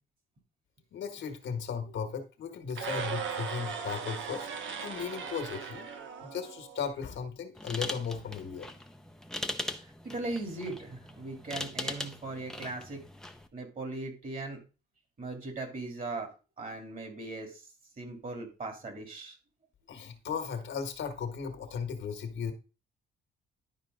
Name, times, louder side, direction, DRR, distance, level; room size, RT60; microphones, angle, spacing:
voice 1, 0.9-4.5 4.8-5.9 6.2-8.7 19.9-22.5, left 6 dB, 70° left, 6 dB, 1.6 m, -36 dB
sound 1, 2.7-6.9, right 6 dB, 75° right, 1.3 m, -38 dB
sound 2, 7.6-13.5, left 1 dB, 5° left, 0.8 m, -40 dB
voice 2, 9.5-13.0 13.5-14.6 15.2-16.3 16.6-17.6 18.0-19.4, right 2 dB, 45° right, 3 dB, 3.3 m, -39 dB
11.0 x 4.6 x 3.8 m, 0.32 s
cardioid pair, 90°, 20 cm